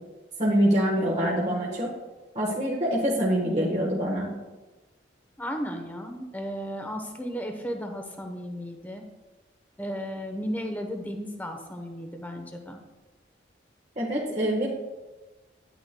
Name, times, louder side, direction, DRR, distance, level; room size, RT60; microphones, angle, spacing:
voice 1, 0.4-1.9 2.3-4.3 14.0-14.7, equal, 35° right, -4 dB, 1.2 m, -25 dB
voice 2, 5.4-9.0 9.8-12.8, equal, 10° left, 4 dB, 0.8 m, -34 dB
10.5 x 9.2 x 2.2 m, 1.2 s
head